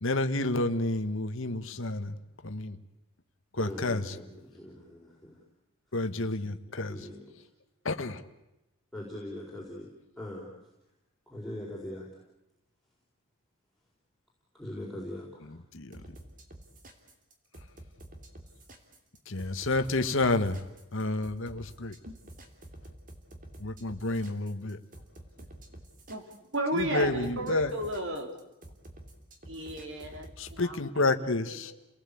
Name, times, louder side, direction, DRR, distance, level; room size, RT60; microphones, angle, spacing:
voice 1, 0.0-2.2 2.4-2.8 3.5-4.1 5.9-7.1 7.8-8.2 15.7-16.0 19.3-20.6 20.9-22.0 23.6-24.8 26.7-27.7 30.4-31.7, left 2 dB, 60° left, 8 dB, 1.3 m, -30 dB
voice 2, 3.6-5.4 6.9-7.4 8.9-9.9 10.2-10.5 11.3-12.1 14.5-15.6, left 1 dB, ahead, -6 dB, 4.5 m, -41 dB
sound 1, 15.9-30.6, right 1 dB, 35° right, 3.1 m, -49 dB
voice 3, 26.5-28.3 29.5-30.8 31.5-31.6, right 1 dB, 55° right, 5 dB, 3.7 m, -33 dB
30.0 x 18.5 x 8.5 m, 0.94 s
head